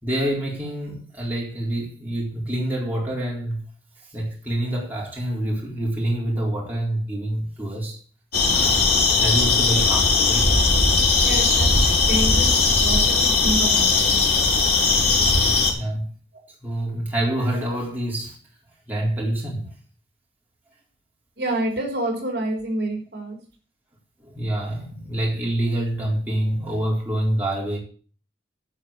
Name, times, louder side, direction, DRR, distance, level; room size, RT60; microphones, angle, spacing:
voice 1, 0.0-3.6 4.1-8.0 8.4-8.8 9.2-10.5 15.6-16.1 16.6-18.4 18.9-19.7 24.2-27.8, right 1 dB, 10° right, 4.0 m, -26 dB
sound 1, 8.3-15.7, left 3 dB, 55° left, 4.0 m, -18 dB
voice 2, 11.2-14.1 21.4-23.4, right 1 dB, 60° right, 3.7 m, -28 dB
11.5 x 5.8 x 8.6 m
head